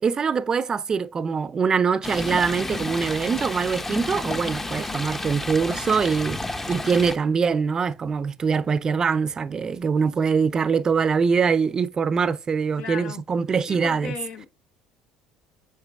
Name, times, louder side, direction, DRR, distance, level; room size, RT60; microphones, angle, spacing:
voice 1, 0.0-6.4 6.7-14.1, right 5 dB, 35° right, 0.6 m, -23 dB
Stream, 2.0-7.1, left 2 dB, 15° left, 0.7 m, -31 dB
voice 2, 12.8-13.2 13.7-14.5, left 7 dB, 65° left, 1.0 m, -36 dB
8.0 x 7.2 x 2.4 m
supercardioid pair, 80°, 2 cm